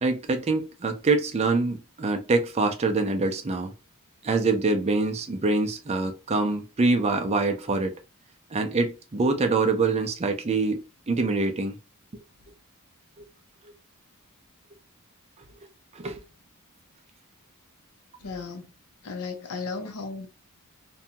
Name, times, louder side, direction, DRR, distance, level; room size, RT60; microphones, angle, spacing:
voice 1, 0.0-3.7 4.2-8.0 8.5-11.8 13.2-13.3 15.9-16.2, right 3 dB, 30° right, 0.4 m, -25 dB
voice 2, 18.2-18.7 19.0-20.3, left 4 dB, 85° left, 0.7 m, -35 dB
2.7 x 2.2 x 2.7 m
head